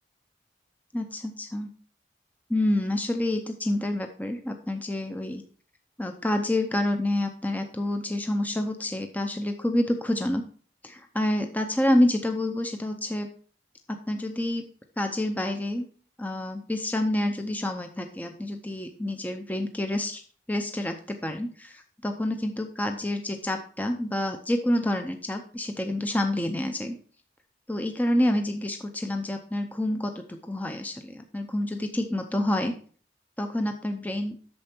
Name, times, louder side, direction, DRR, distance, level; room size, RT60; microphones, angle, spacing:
voice 1, 0.9-1.7 2.5-5.4 6.0-10.4 10.8-13.3 13.9-14.6 15.0-15.9 16.2-20.2 20.5-27.0 27.7-32.7 33.4-34.4, left 1 dB, 10° left, 5 dB, 0.6 m, -28 dB
8.8 x 6.8 x 4.4 m, 0.43 s
head